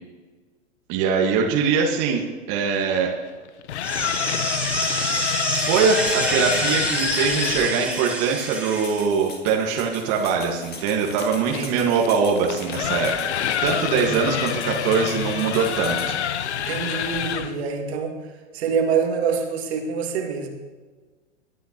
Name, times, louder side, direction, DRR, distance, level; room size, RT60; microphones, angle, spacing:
voice 1, 0.9-3.1 5.5-16.2, right 5 dB, 40° right, 0 dB, 1.6 m, -22 dB
sound 1, 3.5-7.8 10.4-17.6, left 9 dB, 75° left, 0.8 m, -27 dB
sound 2, 3.8-9.0, right 2 dB, 5° right, 2.6 m, -27 dB
sound 3, 4.8-16.1, left 4 dB, 25° left, 2.4 m, -42 dB
voice 2, 11.4-11.9 13.9-14.2 16.6-18.2 18.5-20.5, right 6 dB, 65° right, 3 dB, 2.2 m, -26 dB
20.0 x 9.3 x 2.9 m, 1.4 s
hypercardioid pair, 110°, 35 cm